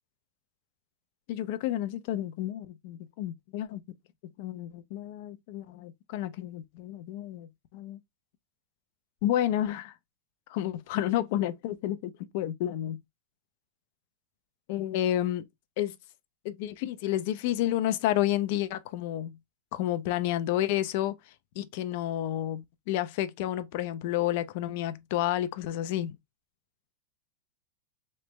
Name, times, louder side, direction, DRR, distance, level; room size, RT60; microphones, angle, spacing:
voice 1, 1.3-3.8 4.4-8.0 9.2-9.9 10.5-13.0 14.7-15.5 15.8-16.0 16.4-19.4 19.7-21.2 21.6-26.2, left 12 dB, 60° left, 0.6 m, -30 dB
3.2 x 3.2 x 3.0 m
hypercardioid pair, 120°, 0 cm